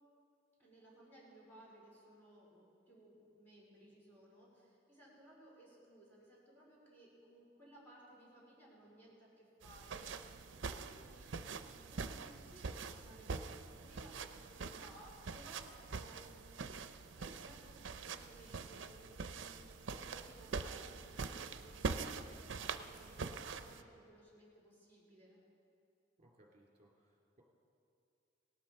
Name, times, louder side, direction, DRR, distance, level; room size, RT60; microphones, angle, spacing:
voice 1, 0.6-13.3 13.6-16.5 17.1-25.4, right 1 dB, 10° left, -7 dB, 4.2 m, -60 dB
sound 1, 9.6-23.8, right 4 dB, 80° right, 0.6 m, -44 dB
voice 2, 26.2-27.4, right 1 dB, 35° right, -2 dB, 2.7 m, -67 dB
18.0 x 12.5 x 4.4 m, 2.6 s
head